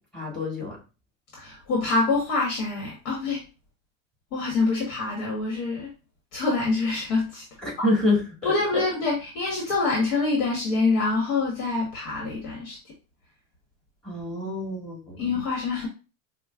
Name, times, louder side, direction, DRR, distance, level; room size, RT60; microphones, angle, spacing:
voice 1, 0.1-0.8 7.6-8.9 14.0-15.3, left 2 dB, ahead, -3 dB, 1.6 m, -27 dB
voice 2, 1.4-3.4 4.3-5.9 6.3-7.4 7.8-7.9 8.4-12.8 15.2-15.9, left 3 dB, 65° left, -2 dB, 1.2 m, -26 dB
4.6 x 2.1 x 2.3 m, 0.32 s
supercardioid pair, 110°, 41 cm